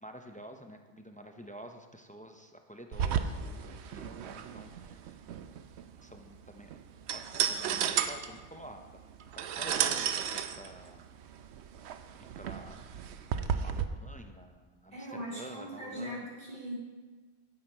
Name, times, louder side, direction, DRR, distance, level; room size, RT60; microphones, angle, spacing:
voice 1, 0.0-5.2 6.0-6.7 7.1-8.9 9.4-11.1 12.4-12.9 13.6-16.3, right 1 dB, 10° left, 5 dB, 0.4 m, -49 dB
sound 1, 2.9-13.8, right 8 dB, 85° right, 0.9 m, -34 dB
voice 2, 14.9-16.8, equal, 45° right, -6 dB, 3.3 m, -40 dB
9.5 x 7.8 x 4.4 m, 1.4 s
omnidirectional pair, 1.1 m